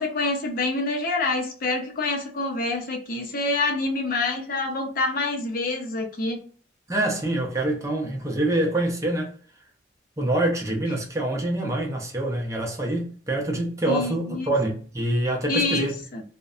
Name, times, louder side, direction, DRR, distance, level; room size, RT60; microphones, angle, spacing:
voice 1, 0.0-6.4 13.9-14.5 15.5-16.2, left 3 dB, 50° left, 0.5 m, -26 dB
voice 2, 6.9-9.3 10.2-15.9, right 1 dB, 15° right, 0.6 m, -25 dB
2.6 x 2.1 x 2.3 m
head